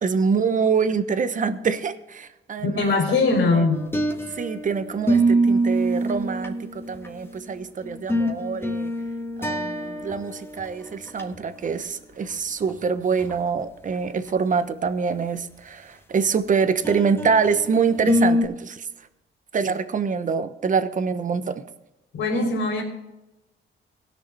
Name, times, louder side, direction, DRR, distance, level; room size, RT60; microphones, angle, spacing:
voice 1, 0.0-3.0 3.5-3.7 4.4-8.9 9.4-18.9 19.5-21.6, right 5 dB, 40° right, 10 dB, 1.0 m, -25 dB
voice 2, 2.6-3.8 22.1-22.8, left 3 dB, 80° left, 0 dB, 3.9 m, -21 dB
sound 1, 3.7-4.6 5.1-7.2 7.8-10.3 10.6-10.7 11.1-11.2 12.7-12.8 13.2-13.3 16.8-17.6 18.1-18.4, right 1 dB, 10° left, 1.7 m, -24 dB
18.0 x 6.6 x 4.2 m, 0.97 s
cardioid pair, 90°, 20 cm